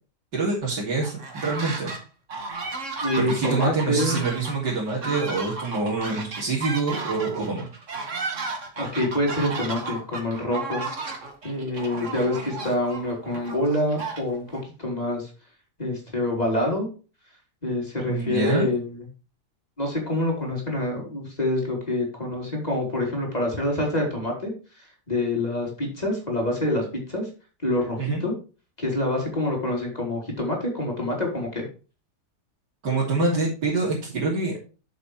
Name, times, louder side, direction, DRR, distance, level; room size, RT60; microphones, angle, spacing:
voice 1, 0.3-1.9 3.2-7.7 18.0-18.7 28.0-28.2 32.8-34.5, right 3 dB, 90° right, -6 dB, 3.5 m, -26 dB
sound 1, 1.0-2.0 2.3-14.6, right 3 dB, 45° right, 2.2 m, -34 dB
voice 2, 3.0-4.3 8.8-10.9 11.4-15.3 15.8-16.9 17.6-19.1 19.8-24.5 24.8-27.3 27.6-28.3 28.8-31.7, left 1 dB, 25° left, -1 dB, 4.4 m, -26 dB
10.5 x 7.6 x 3.3 m, 0.34 s
omnidirectional pair, 1.8 m